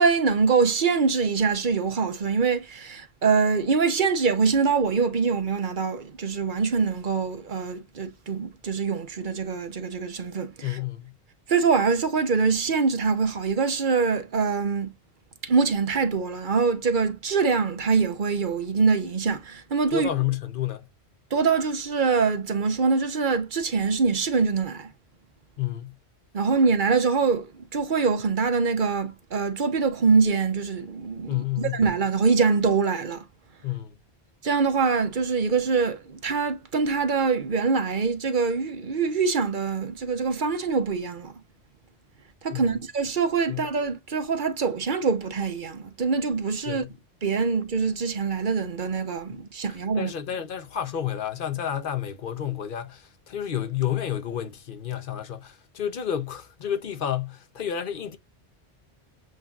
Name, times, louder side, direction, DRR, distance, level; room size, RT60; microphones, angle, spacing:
voice 1, 0.0-10.8 11.5-14.9 15.4-20.1 21.3-24.9 26.3-33.2 34.4-41.3 42.4-46.8 47.2-50.1, right 5 dB, 50° right, 1.0 m, -24 dB
voice 2, 10.6-11.1 19.9-20.8 25.6-25.9 31.3-31.8 33.6-33.9 42.5-42.8 43.5-43.6 46.7-46.9 49.9-58.2, left 10 dB, 55° left, 0.8 m, -30 dB
7.7 x 2.7 x 2.4 m
omnidirectional pair, 1.1 m